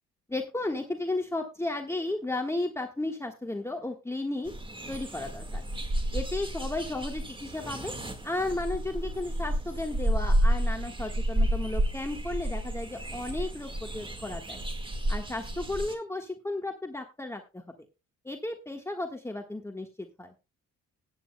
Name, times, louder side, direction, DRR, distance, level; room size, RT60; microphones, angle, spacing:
voice 1, 0.3-4.5 4.9-5.6 6.1-7.9 8.2-14.6 15.1-17.6 18.2-20.3, left 2 dB, 10° left, 2 dB, 1.4 m, -34 dB
sound 1, 4.5-15.9, right 1 dB, 15° right, 1.7 m, -31 dB
16.5 x 9.4 x 2.2 m, 0.28 s
cardioid pair, 90°, 30 cm